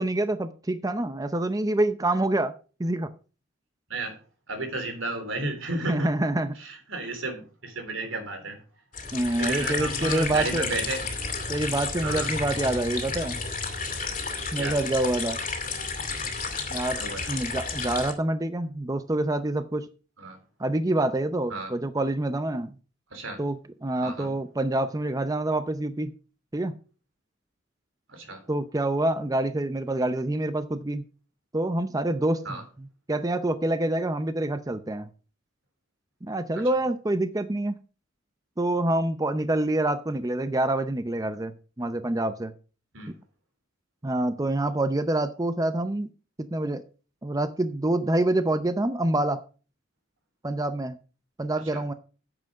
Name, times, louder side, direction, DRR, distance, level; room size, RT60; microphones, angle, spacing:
voice 1, 0.0-2.5 2.8-3.1 5.7-6.5 9.1-10.7 11.5-13.4 14.5-15.4 16.7-17.0 17.3-19.9 20.6-22.7 23.4-26.1 26.5-26.7 28.5-31.0 31.5-35.1 36.2-37.7 38.6-42.5 44.0-46.1 46.4-46.8 47.2-49.4 50.4-51.0 51.4-51.9, right 1 dB, 20° right, 11 dB, 0.6 m, -26 dB
voice 2, 4.5-6.1 6.6-8.6 9.4-11.0 12.0-12.3 14.6-14.8 17.0-17.3 20.2-20.4 21.5-21.7 23.1-23.4 24.0-24.3 28.1-28.4 32.5-32.6 42.9-43.1 51.7-51.8, right 2 dB, 85° right, 6 dB, 3.4 m, -32 dB
sound 1, 8.9-18.1, left 4 dB, 40° left, 2.3 m, -32 dB
9.6 x 7.7 x 5.1 m, 0.36 s
head